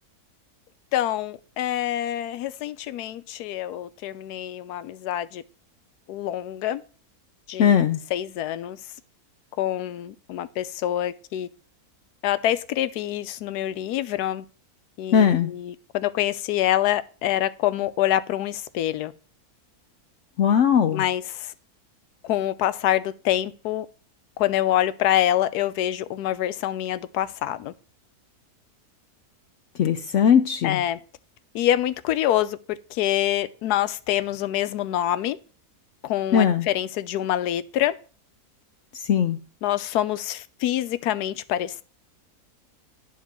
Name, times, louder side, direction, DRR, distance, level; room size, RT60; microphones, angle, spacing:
voice 1, 0.9-5.4 6.1-6.8 7.5-7.7 8.1-8.8 9.6-11.5 12.2-14.4 15.0-19.1 20.9-21.5 22.2-23.9 24.4-27.7 30.6-31.0 31.5-35.4 36.0-37.9 39.6-41.8, left 12 dB, 85° left, 1.1 m, -26 dB
voice 2, 7.6-8.0 15.1-15.5 20.4-21.0 29.8-30.8 36.3-36.7 38.9-39.4, left 8 dB, 65° left, 0.8 m, -19 dB
9.6 x 3.7 x 7.2 m
omnidirectional pair, 1.6 m